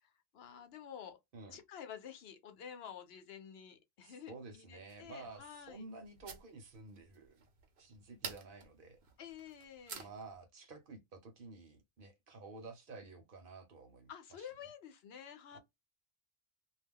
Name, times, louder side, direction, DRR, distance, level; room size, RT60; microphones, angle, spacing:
voice 1, 0.0-1.2 1.5-5.8 9.2-10.1 14.1-15.6, left 8 dB, 80° left, 0.9 m, -50 dB
voice 2, 4.0-7.4 7.8-9.0 10.0-14.1 14.4-14.5 15.5-15.6, right 3 dB, 60° right, 0.9 m, -52 dB
sound 1, 4.9-10.4, right 6 dB, 85° right, 1.0 m, -51 dB
2.3 x 2.2 x 3.5 m
omnidirectional pair, 1.0 m